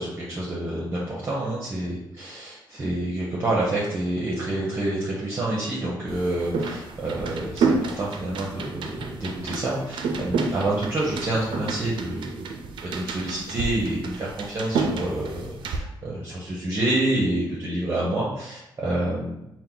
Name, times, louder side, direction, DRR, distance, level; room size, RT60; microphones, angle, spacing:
voice 1, 0.0-19.5, right 1 dB, 30° right, -6 dB, 0.8 m, -28 dB
sound 1, 6.1-15.8, right 4 dB, 75° right, 0.5 m, -30 dB
4.4 x 2.2 x 3.8 m, 0.87 s
wide cardioid pair, 150°, 8 cm